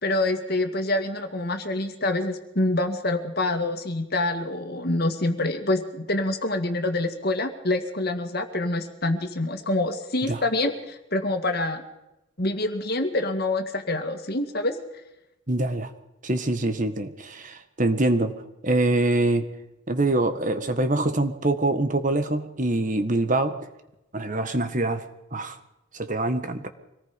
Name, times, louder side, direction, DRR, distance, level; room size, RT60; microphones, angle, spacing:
voice 1, 0.0-11.8 12.4-14.8, left 2 dB, 45° left, 6 dB, 2.2 m, -26 dB
voice 2, 15.5-15.9 16.2-18.3 18.6-19.4 19.9-23.5 24.1-25.0 25.3-25.6 25.9-26.7, right 2 dB, 40° right, 8 dB, 1.6 m, -24 dB
25.5 x 19.0 x 5.3 m, 0.91 s
head